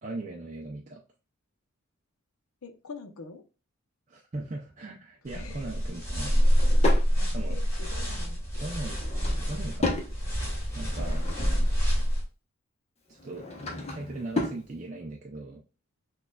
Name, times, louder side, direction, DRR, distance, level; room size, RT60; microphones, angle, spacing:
voice 1, 0.0-1.0 4.1-6.4 7.2-7.6 8.5-9.0 9.4-10.0 10.7-11.3 13.1-13.5 13.9-15.6, right 2 dB, 35° right, 0 dB, 0.4 m, -39 dB
voice 2, 2.6-3.4 5.3-5.6 6.2-6.3 7.5-8.4, left 4 dB, 75° left, 6 dB, 0.7 m, -44 dB
sound 1, 5.3-12.2, equal, 10° left, 2.0 m, -26 dB
Drawer open or close / Wood, 6.1-7.1 8.8-10.1 10.6-11.8 13.1-14.6, left 2 dB, 30° left, 0.8 m, -34 dB
6.3 x 2.4 x 2.2 m, 0.33 s
head